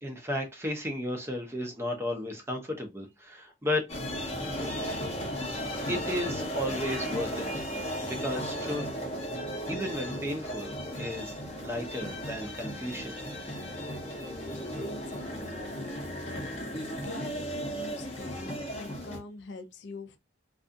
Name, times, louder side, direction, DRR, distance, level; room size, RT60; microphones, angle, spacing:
voice 1, 0.0-3.9 5.9-8.8 9.7-13.2, left 1 dB, 15° right, 0.5 m, -34 dB
sound 1, 3.9-19.2, equal, 30° left, 0.7 m, -35 dB
voice 2, 14.2-15.6 16.2-16.4 17.0-20.2, left 3 dB, 65° left, 0.4 m, -44 dB
2.4 x 2.3 x 2.5 m
head